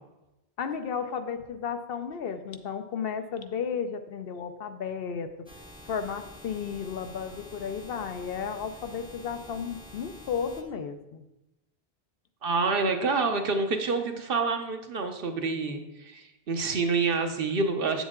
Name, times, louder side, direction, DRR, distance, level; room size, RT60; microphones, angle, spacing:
voice 1, 0.6-5.5 5.9-11.2, left 6 dB, 65° left, 8 dB, 0.8 m, -33 dB
sound 1, 5.5-10.6, left 1 dB, 5° right, 0.6 m, -48 dB
voice 2, 12.4-18.0, right 4 dB, 60° right, 6 dB, 1.0 m, -27 dB
8.2 x 7.1 x 3.6 m, 0.97 s
omnidirectional pair, 1.1 m